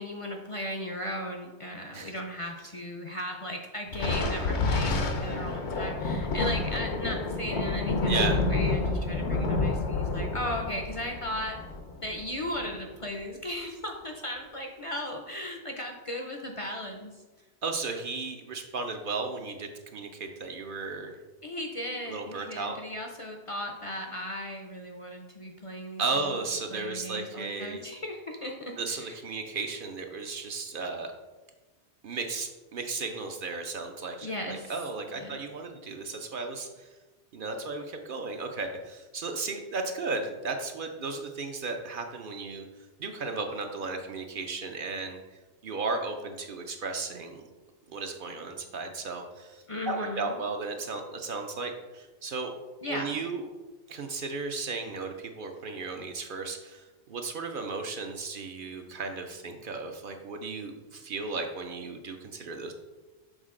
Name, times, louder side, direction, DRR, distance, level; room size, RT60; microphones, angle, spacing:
voice 1, 0.0-11.6 12.0-17.1 21.4-26.4 26.7-29.2 34.2-34.7 35.1-35.4 49.7-50.4 52.8-53.2, left 1 dB, 40° left, 2 dB, 0.5 m, -36 dB
Thunder, 3.9-12.7, left 3 dB, 75° left, 1.0 m, -29 dB
voice 2, 8.1-8.4 17.6-21.2 22.1-22.8 26.0-27.8 28.8-31.1 32.0-36.9 37.3-42.7 43.0-45.2 45.6-47.4 47.9-52.5 52.9-53.5 53.9-62.7, right 4 dB, 60° right, 4 dB, 0.7 m, -35 dB
6.5 x 3.9 x 3.7 m, 1.2 s
omnidirectional pair, 1.1 m